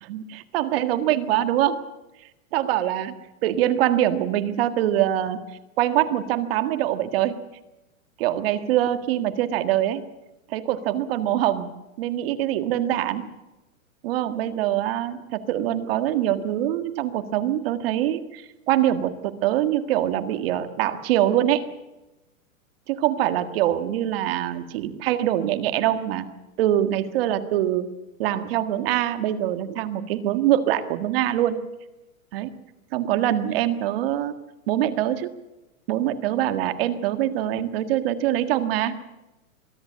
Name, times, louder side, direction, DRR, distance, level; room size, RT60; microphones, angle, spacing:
voice 1, 0.5-1.8 2.5-3.1 3.4-5.4 5.8-7.4 8.2-10.1 10.5-11.7 12.0-13.3 14.0-21.7 22.9-26.3 26.6-27.9 28.2-31.6 32.3-32.5 32.9-34.3 34.7-35.3 35.9-39.0, right 12 dB, 45° right, 9 dB, 1.7 m, -24 dB
22.5 x 13.5 x 8.6 m, 1.0 s
hypercardioid pair, 155°, 42 cm